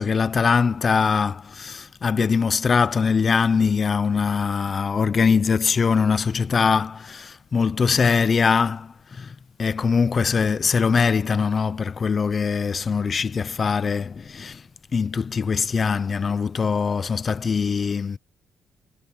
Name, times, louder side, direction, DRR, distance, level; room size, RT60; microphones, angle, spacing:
voice 1, 0.0-9.3 9.6-14.6 14.9-18.2, left 5 dB, 40° left, 0.9 m, -22 dB
cardioid pair, 90°, 0 cm